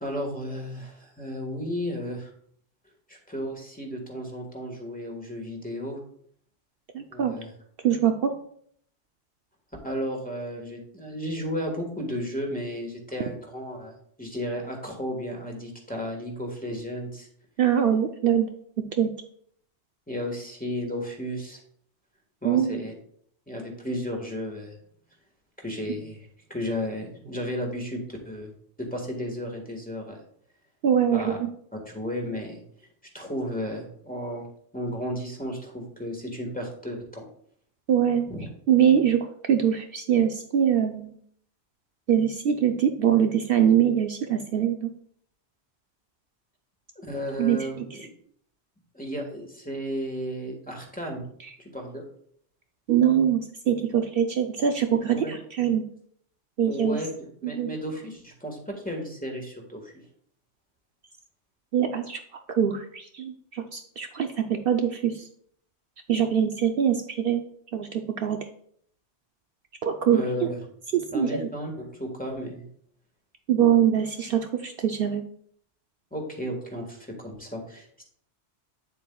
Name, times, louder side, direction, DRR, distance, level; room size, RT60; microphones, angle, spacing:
voice 1, 0.0-2.3 3.1-6.0 7.1-7.5 9.8-17.3 20.1-21.6 22.4-22.9 23.5-24.8 25.6-28.5 28.8-30.2 31.1-31.4 31.7-32.6 33.1-37.3 38.3-38.5 46.9-48.0 48.9-51.2 51.6-52.0 55.0-55.4 56.6-59.9 70.0-70.6 71.1-72.6 76.1-78.0, equal, 10° left, 0 dB, 1.5 m, -33 dB
voice 2, 6.9-7.3 7.8-8.3 17.6-18.5 19.0-19.1 22.4-22.8 30.8-31.5 37.9-38.2 38.7-41.1 42.1-44.9 47.4-47.8 52.9-55.8 56.6-57.0 57.4-57.7 61.7-62.2 62.5-65.2 66.1-67.4 67.7-68.4 69.8-70.2 70.9-71.5 73.5-75.2, right 9 dB, 65° right, 5 dB, 0.8 m, -23 dB
9.1 x 7.4 x 2.3 m, 0.64 s
omnidirectional pair, 1.1 m